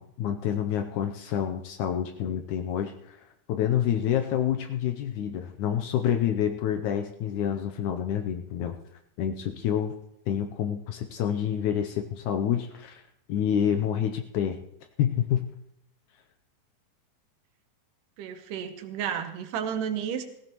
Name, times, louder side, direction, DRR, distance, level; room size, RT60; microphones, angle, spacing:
voice 1, 0.0-8.8 9.2-10.0 10.3-13.0 13.3-14.6 15.0-15.5, left 9 dB, 75° left, 6 dB, 2.0 m, -28 dB
voice 2, 18.2-20.2, right 8 dB, 80° right, 7 dB, 2.6 m, -32 dB
17.5 x 15.0 x 3.0 m, 0.77 s
omnidirectional pair, 3.7 m